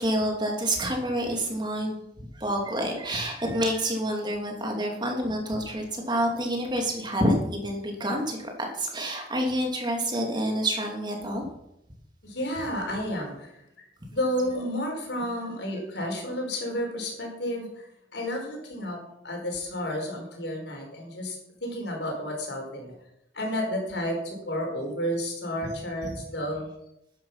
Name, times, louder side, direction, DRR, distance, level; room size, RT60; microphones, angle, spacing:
voice 1, 0.0-2.0 2.3-11.5, equal, 25° right, 1 dB, 2.9 m, -28 dB
voice 2, 12.2-13.5 13.8-13.9 14.1-17.7 18.1-19.0 19.2-22.9 23.3-26.7, equal, 85° left, 1 dB, 5.1 m, -31 dB
13.5 x 10.5 x 5.8 m, 0.80 s
head